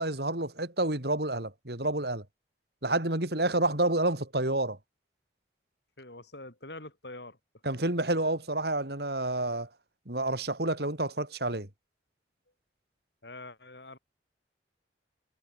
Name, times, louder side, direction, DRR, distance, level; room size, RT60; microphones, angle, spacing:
voice 1, 0.0-2.2 2.8-4.8 7.6-9.7 10.1-11.7, right 2 dB, 60° right, 3.3 m, -29 dB
voice 2, 6.0-7.4 13.2-14.0, left 2 dB, 65° left, 7.1 m, -45 dB
head